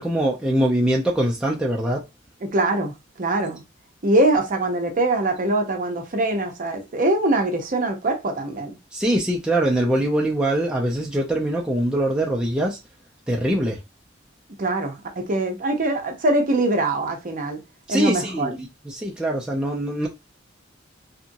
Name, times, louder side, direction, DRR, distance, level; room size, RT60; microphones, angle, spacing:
voice 1, 0.0-2.0 8.9-12.8 13.3-13.8 17.9-20.1, right 1 dB, 5° right, 0.4 m, -23 dB
voice 2, 2.4-3.6 4.0-8.8 14.6-17.6 17.9-18.5, right 2 dB, 45° right, 0.6 m, -23 dB
2.9 x 2.5 x 2.6 m
head